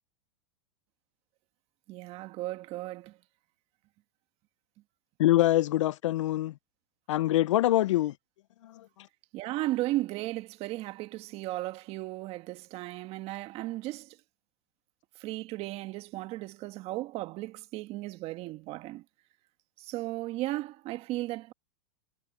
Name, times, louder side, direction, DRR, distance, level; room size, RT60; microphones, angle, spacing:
voice 1, 1.9-3.2 9.3-14.2 15.2-19.0 19.8-21.5, right 17 dB, 40° right, 1.6 m, -35 dB
voice 2, 5.2-6.5 7.1-8.1 8.6-8.8, left 15 dB, 80° left, 0.5 m, -24 dB
supercardioid pair, 130°, 16 cm